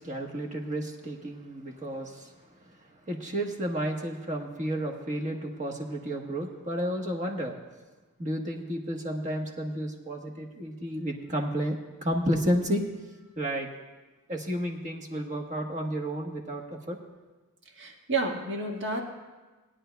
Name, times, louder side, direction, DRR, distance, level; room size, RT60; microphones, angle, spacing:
voice 1, 0.0-2.3 3.1-7.6 8.2-12.8 13.3-13.7 14.3-17.0, equal, 35° right, 1 dB, 1.3 m, -31 dB
voice 2, 17.7-19.0, right 3 dB, 55° right, 1 dB, 1.6 m, -30 dB
19.5 x 10.0 x 2.3 m, 1.2 s
head